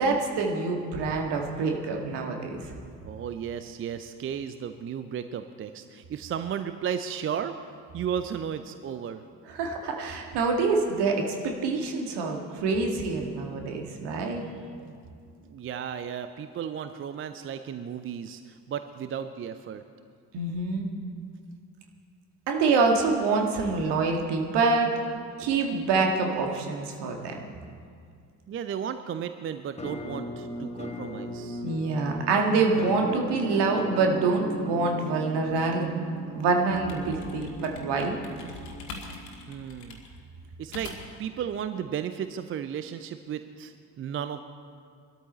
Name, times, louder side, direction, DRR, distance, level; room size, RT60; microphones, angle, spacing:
voice 1, 0.0-2.6 9.5-11.3 11.6-14.4 20.3-20.8 22.5-24.9 25.4-27.3 31.6-35.9 36.3-38.2, right 4 dB, 55° right, 2 dB, 2.0 m, -26 dB
voice 2, 3.0-7.6 7.9-9.2 14.1-14.5 15.5-19.8 28.5-31.6 39.5-40.0 40.6-44.4, right 8 dB, 25° right, 10 dB, 0.6 m, -34 dB
Musical instrument, 29.8-39.6, left 1 dB, 15° left, 1.4 m, -39 dB
sound 1, 36.9-41.3, left 3 dB, 70° left, 1.8 m, -43 dB
21.5 x 13.0 x 4.3 m, 2.2 s
figure-of-eight pair, 50°, 49 cm